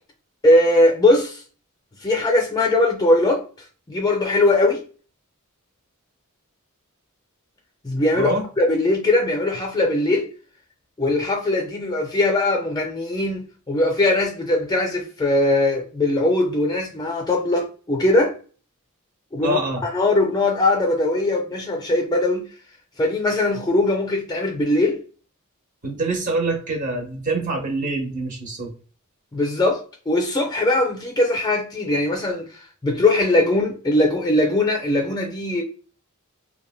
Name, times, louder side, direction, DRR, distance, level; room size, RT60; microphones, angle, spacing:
voice 1, 0.4-1.4 2.0-3.4 3.9-4.8 7.8-8.3 8.6-10.3 11.0-18.3 19.3-22.5 23.0-25.0 29.3-35.6, left 2 dB, 20° left, 0.4 m, -20 dB
voice 2, 19.4-19.8 25.8-28.7, right 2 dB, 40° right, 0.7 m, -25 dB
3.2 x 2.2 x 2.2 m
head